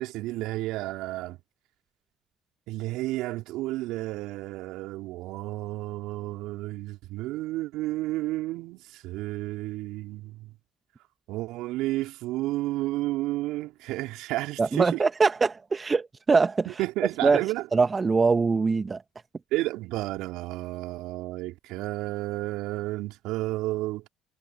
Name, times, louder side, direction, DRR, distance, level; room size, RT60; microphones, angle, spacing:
voice 1, 0.0-1.4 2.7-10.5 11.3-15.0 16.8-17.6 19.5-24.0, right 18 dB, 65° right, 3.3 m, -31 dB
voice 2, 14.6-16.7 17.2-17.4 17.7-19.0, right 4 dB, 30° right, 1.5 m, -23 dB
hypercardioid pair, 60°, 0 cm